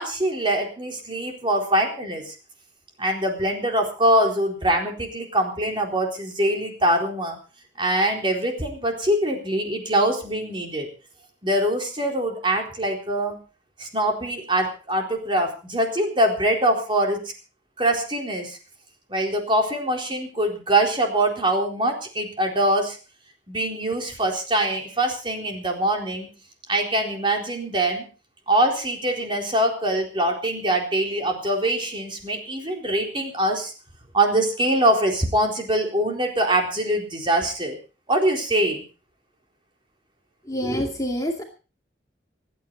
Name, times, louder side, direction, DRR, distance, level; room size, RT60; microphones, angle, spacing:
voice 1, 0.0-2.3 3.0-7.4 7.8-10.9 11.4-13.4 13.8-17.2 17.8-18.6 19.1-23.0 23.5-26.3 26.7-28.1 28.5-33.7 34.1-37.8 38.1-38.8, right 1 dB, 25° right, 2 dB, 4.1 m, -23 dB
voice 2, 40.5-41.4, equal, 20° left, 1 dB, 2.3 m, -26 dB
27.5 x 9.6 x 4.1 m, 0.35 s
head